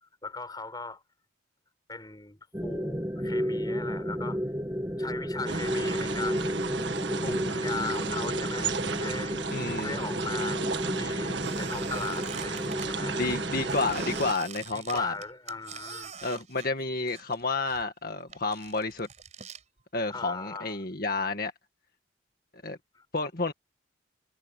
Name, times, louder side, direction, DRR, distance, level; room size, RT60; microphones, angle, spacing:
voice 1, 0.2-1.0 1.9-4.4 5.0-6.6 7.2-9.4 9.8-10.6 11.0-13.2 14.7-16.1 20.1-20.8 22.9-23.0, left 3 dB, 20° left, 4.6 m, -38 dB
sound 1, 2.5-14.3, equal, 15° right, 1.5 m, -32 dB
sound 2, 5.5-14.3, right 4 dB, 70° right, 1.8 m, -34 dB
voice 2, 9.5-9.9 13.2-15.1 16.2-19.1 19.9-21.5 22.6-22.8 23.1-23.5, left 3 dB, 50° left, 1.9 m, -30 dB
Squeak, 11.4-12.9 13.7-17.4 17.7-19.6, right 7 dB, 40° right, 4.9 m, -44 dB
head